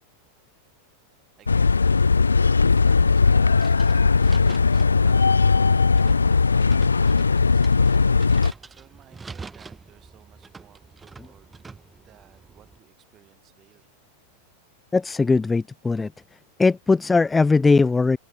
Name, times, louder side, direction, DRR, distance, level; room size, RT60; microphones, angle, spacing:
voice 1, 1.4-2.0 2.7-11.5 12.0-13.9, right 12 dB, 30° right, 7.3 m, -56 dB
sound 1, 1.5-8.5, left 4 dB, 75° left, 0.4 m, -18 dB
sound 2, 3.6-12.8, right 4 dB, 15° right, 2.4 m, -45 dB
voice 2, 14.9-16.1 16.6-18.2, left 3 dB, 10° left, 0.6 m, -19 dB
open air
figure-of-eight pair, 90°, 0 cm